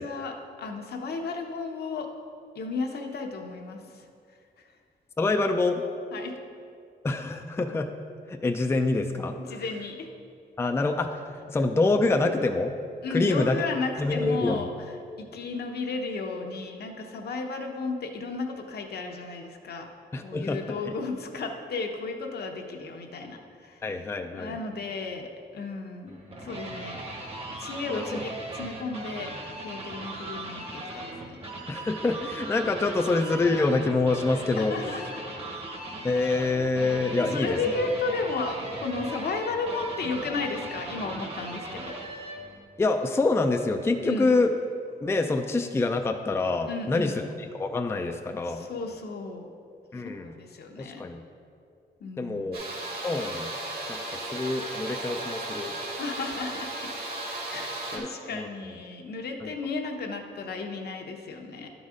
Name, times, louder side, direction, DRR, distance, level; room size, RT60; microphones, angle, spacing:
voice 1, 0.0-2.1 2.5-4.1 6.1-6.3 9.5-10.1 13.0-14.7 15.2-19.9 20.2-23.8 24.3-27.0 27.6-29.3 29.6-31.4 34.6-35.2 37.2-42.0 44.0-44.3 46.7-47.2 48.4-49.5 50.2-51.0 52.0-52.5 56.0-56.9 57.5-61.7, left 3 dB, 65° left, 3 dB, 0.8 m, -34 dB
voice 2, 5.2-5.8 7.0-7.9 8.3-9.4 10.6-12.7 13.1-13.6 14.0-14.7 20.1-21.0 23.8-24.6 27.9-28.2 31.7-34.7 36.0-37.6 42.8-44.5 45.0-47.3 47.5-48.7 49.9-50.3 50.8-51.2 52.2-52.6 53.0-53.5 53.9-54.0 54.3-55.7 57.9-58.5 59.4-59.5, left 3 dB, 15° left, 4 dB, 0.3 m, -26 dB
Harmonics Electric Guitar, 26.1-42.6, right 2 dB, 35° right, 1.1 m, -38 dB
sound 1, 52.5-58.0, right 2 dB, 60° right, 1.8 m, -35 dB
11.5 x 4.0 x 4.9 m, 2.4 s
wide cardioid pair, 135°, 17 cm